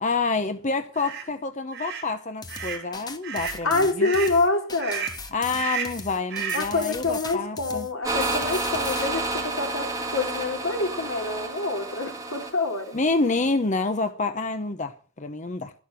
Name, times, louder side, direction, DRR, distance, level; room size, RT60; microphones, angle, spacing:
voice 1, 0.0-4.1 5.3-7.9 12.9-15.7, left 3 dB, 35° left, 0.9 m, -28 dB
sound 1, 0.9-1.2 1.7-2.1 2.5-2.8 3.2-3.6 4.0-4.4 4.8-5.2 5.5-6.0 6.3-6.7, right 7 dB, 55° right, 6.9 m, -32 dB
sound 2, 2.4-9.1, left 4 dB, 20° left, 1.4 m, -38 dB
voice 2, 3.6-5.1 6.5-13.0, left 3 dB, 80° left, 3.6 m, -26 dB
sound 3, 8.0-13.5, right 2 dB, 15° right, 2.7 m, -30 dB
13.5 x 11.5 x 5.9 m
head